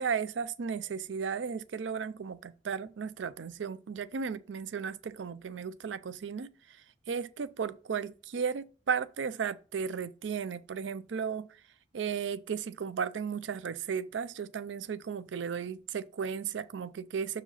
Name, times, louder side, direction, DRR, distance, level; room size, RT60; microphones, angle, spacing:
voice 1, 0.0-11.6 11.9-17.4, right 6 dB, 80° right, 0.4 m, -35 dB
6.7 x 4.9 x 5.6 m
head